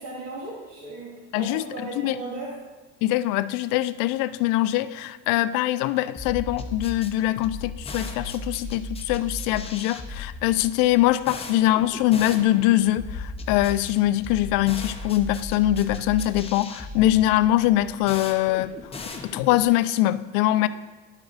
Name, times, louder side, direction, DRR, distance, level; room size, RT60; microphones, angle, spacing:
voice 1, 0.0-2.6, right 2 dB, 45° right, -7 dB, 2.2 m, -36 dB
voice 2, 1.3-1.7 2.0-2.2 3.0-18.7 19.2-20.7, left 14 dB, 65° left, 15 dB, 0.5 m, -23 dB
sound 1, 6.2-19.8, left 2 dB, 15° left, 0.8 m, -36 dB
11.5 x 4.8 x 4.0 m, 1.2 s
supercardioid pair, 105°, 35 cm